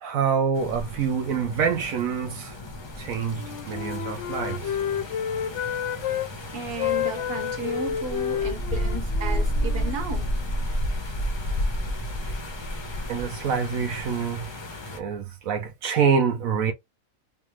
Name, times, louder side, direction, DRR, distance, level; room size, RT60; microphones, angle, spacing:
voice 1, 0.0-2.6 3.0-4.8 13.1-14.4 14.9-16.7, right 6 dB, 75° right, 1.1 m, -26 dB
sound 1, 0.5-15.0, equal, 30° left, 0.5 m, -31 dB
Wind instrument woodwind instrument, 3.3-6.3 6.8-10.6, left 9 dB, 65° left, 0.8 m, -30 dB
voice 2, 6.5-10.3, right 4 dB, 45° right, 1.1 m, -34 dB
3.3 x 2.5 x 2.9 m
omnidirectional pair, 1.5 m